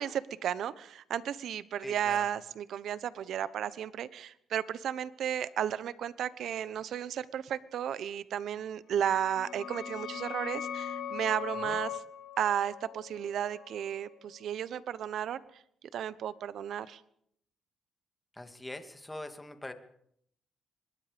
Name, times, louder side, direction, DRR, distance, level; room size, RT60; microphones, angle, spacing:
voice 1, 0.0-11.9 12.4-15.4 15.9-17.0, right 9 dB, 70° right, 16 dB, 1.1 m, -33 dB
voice 2, 1.8-2.3 11.6-11.8 18.3-19.7, left 1 dB, 10° left, 7 dB, 2.5 m, -43 dB
sound 1, 9.0-14.4, left 9 dB, 70° left, 1.8 m, -41 dB
24.5 x 21.5 x 5.3 m, 0.71 s
cardioid pair, 90°, 0 cm